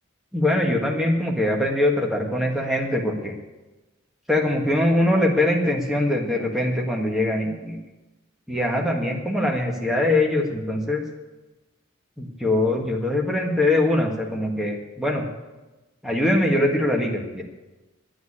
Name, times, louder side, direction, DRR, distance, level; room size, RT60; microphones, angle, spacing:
voice 1, 0.3-3.3 4.3-7.8 8.5-11.0 12.2-15.3 16.0-17.4, left 1 dB, ahead, 0 dB, 1.7 m, -22 dB
9.5 x 9.4 x 9.8 m, 1.1 s
head